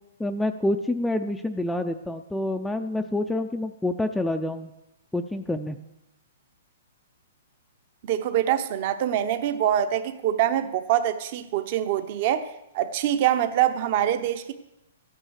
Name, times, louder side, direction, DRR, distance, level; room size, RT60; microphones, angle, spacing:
voice 1, 0.2-4.7 5.1-5.8, left 1 dB, 5° left, 0.4 m, -27 dB
voice 2, 8.0-14.5, right 11 dB, 45° right, 0.8 m, -24 dB
14.0 x 9.0 x 6.4 m
hypercardioid pair, 150°, 0 cm